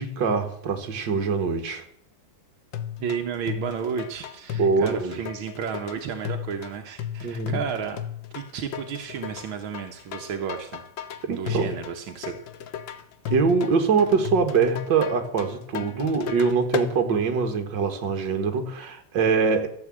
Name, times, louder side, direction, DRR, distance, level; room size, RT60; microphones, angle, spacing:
voice 1, 0.0-1.8 4.6-5.2 7.2-7.6 11.3-11.7 13.3-19.7, right 5 dB, 65° right, 2.2 m, -23 dB
sound 1, 2.7-16.9, left 9 dB, 75° left, 1.6 m, -35 dB
voice 2, 3.0-8.0 8.3-10.8 11.3-12.4, right 7 dB, 85° right, 1.9 m, -32 dB
13.5 x 8.2 x 7.7 m
omnidirectional pair, 2.2 m